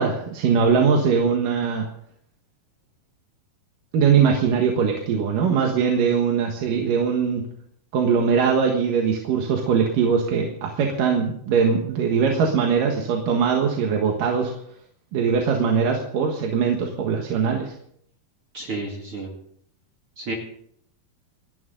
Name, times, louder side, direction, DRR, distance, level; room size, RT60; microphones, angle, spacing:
voice 1, 0.0-1.9 3.9-7.4 7.9-14.5 15.1-17.7, right 6 dB, 65° right, 2 dB, 2.9 m, -21 dB
voice 2, 18.5-19.3 20.2-20.3, right 2 dB, 40° right, 1 dB, 2.7 m, -31 dB
28.5 x 10.5 x 3.9 m, 0.68 s
omnidirectional pair, 4.4 m